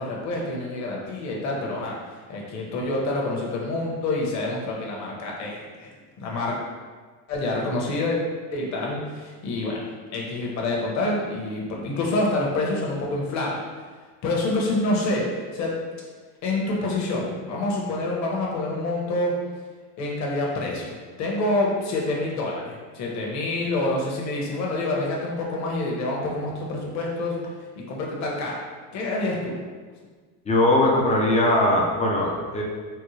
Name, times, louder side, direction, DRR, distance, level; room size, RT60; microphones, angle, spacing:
voice 1, 0.0-2.0 2.3-6.6 7.3-8.2 8.5-9.8 10.1-13.6 14.2-15.3 15.5-15.7 16.4-19.3 20.0-27.4 27.8-28.6 28.9-29.6, left 2 dB, 35° left, -2 dB, 0.9 m, -27 dB
voice 2, 30.5-32.6, left 1 dB, 15° left, -2 dB, 0.4 m, -20 dB
4.4 x 2.1 x 3.1 m, 1.5 s
supercardioid pair, 110°, 48 cm